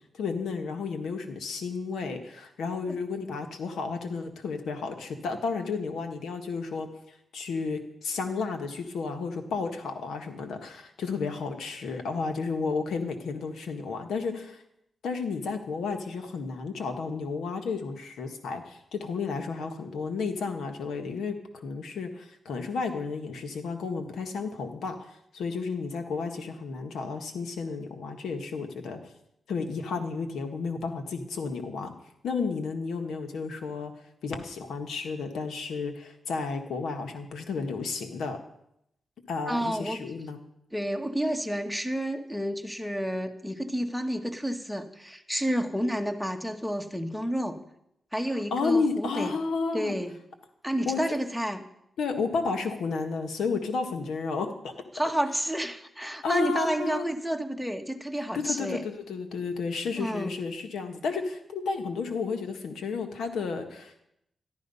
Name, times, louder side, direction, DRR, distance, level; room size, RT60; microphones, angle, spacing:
voice 1, 0.1-6.9 7.3-14.6 15.0-29.0 29.5-31.9 32.2-33.9 34.2-38.4 39.3-40.4 48.5-49.9 50.8-51.0 52.0-54.7 56.2-57.0 58.3-64.0, left 4 dB, 85° left, 6 dB, 1.7 m, -32 dB
voice 2, 39.5-40.0 40.7-47.6 48.1-49.3 49.7-50.1 50.6-51.6 54.9-58.8 60.0-60.3, equal, 5° left, 7 dB, 1.6 m, -30 dB
13.0 x 11.5 x 5.6 m, 0.78 s
cardioid pair, 65°, 0 cm